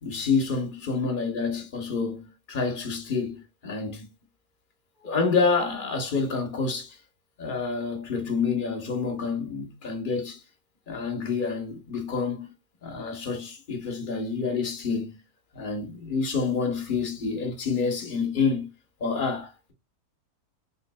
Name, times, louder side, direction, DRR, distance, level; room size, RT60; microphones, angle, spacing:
voice 1, 0.0-4.1 5.0-7.0 7.4-10.4 10.9-12.5 12.8-15.1 15.5-18.7 19.0-19.7, left 4 dB, 35° left, 1.0 m, -28 dB
3.8 x 3.5 x 2.2 m
omnidirectional pair, 1.7 m